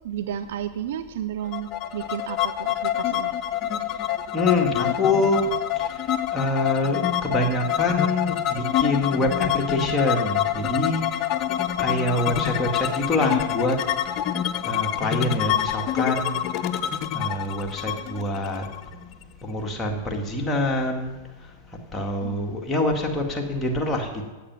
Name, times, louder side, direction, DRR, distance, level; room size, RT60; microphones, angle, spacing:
voice 1, 0.0-3.3 8.5-8.6 11.8-11.9 22.2-22.5, right 10 dB, 70° right, 11 dB, 0.5 m, -32 dB
sound 1, 1.5-19.2, left 11 dB, 45° left, 0.6 m, -26 dB
voice 2, 4.3-5.4 6.3-11.1 11.8-13.8 14.6-16.3 17.1-18.6 19.4-21.1 21.9-24.2, left 2 dB, 15° left, 0 dB, 2.0 m, -25 dB
8.8 x 8.6 x 6.2 m, 1.2 s
hypercardioid pair, 105°, 0 cm